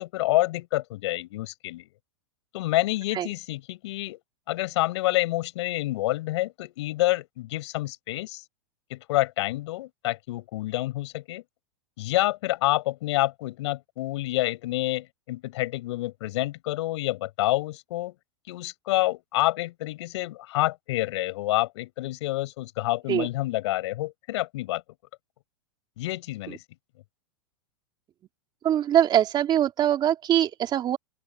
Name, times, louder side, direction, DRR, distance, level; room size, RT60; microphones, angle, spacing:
voice 1, 0.0-1.9 2.5-4.2 4.5-8.4 8.9-11.4 12.0-18.2 18.5-24.8 26.0-26.6, left 17 dB, 65° left, 6.8 m, -28 dB
voice 2, 28.6-31.0, right 10 dB, 30° right, 3.2 m, -22 dB
open air
hypercardioid pair, 135°, 16 cm